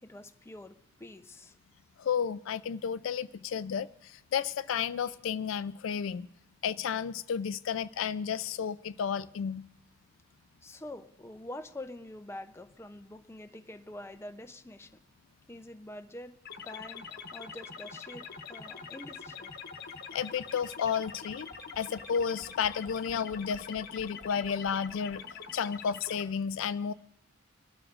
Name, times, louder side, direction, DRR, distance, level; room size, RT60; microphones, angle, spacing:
voice 1, 0.0-1.6 10.6-15.0 15.5-16.4 16.6-17.0 17.3-19.5, left 1 dB, 10° left, 7 dB, 0.6 m, -46 dB
voice 2, 2.0-6.3 6.6-9.7 20.1-21.5 21.8-25.2 25.5-26.9, left 7 dB, 65° left, 14 dB, 0.4 m, -32 dB
sound 1, 16.4-26.2, left 6 dB, 50° left, 1.1 m, -44 dB
26.0 x 12.5 x 2.5 m, 0.84 s
head